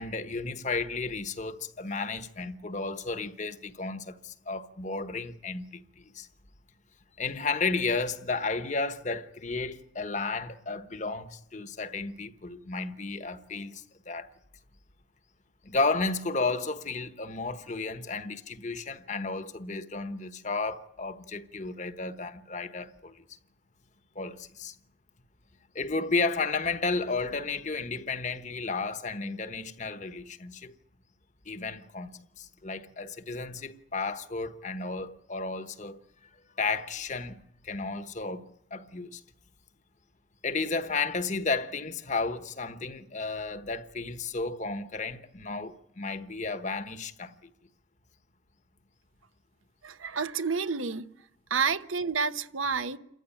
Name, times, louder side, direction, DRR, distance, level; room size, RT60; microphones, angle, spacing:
voice 1, 0.0-6.3 7.2-14.3 15.6-23.1 24.2-24.7 25.7-30.7 31.5-32.1 32.4-36.0 36.6-37.4 37.6-38.4 38.7-39.2 40.4-47.3, left 3 dB, 35° left, 1.1 m, -33 dB
voice 2, 49.8-51.1 51.5-53.0, right 5 dB, 85° right, 1.0 m, -29 dB
28.5 x 14.5 x 10.0 m
head